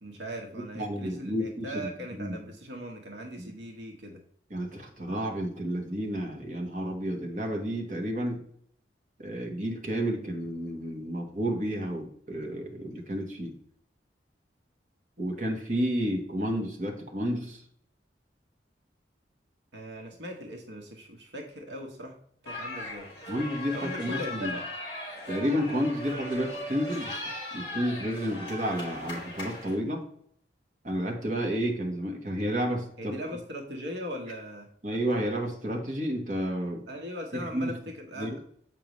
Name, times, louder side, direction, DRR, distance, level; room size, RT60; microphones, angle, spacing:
voice 1, 0.0-4.2 19.7-22.1 22.4-23.1 23.7-24.6 33.0-34.7 36.9-38.4, equal, 80° right, 2 dB, 1.2 m, -39 dB
voice 2, 0.7-1.9 2.2-2.3 3.4-3.5 4.5-8.4 9.2-13.5 15.2-17.6 23.3-24.6 25.3-27.2 27.5-30.0 30.8-33.2 34.8-36.9 37.5-37.8 38.2-38.4, equal, 45° right, 1 dB, 1.4 m, -31 dB
sound 1, 22.5-29.8, left 2 dB, 25° left, 3.1 m, -38 dB
7.6 x 5.2 x 3.1 m, 0.63 s
head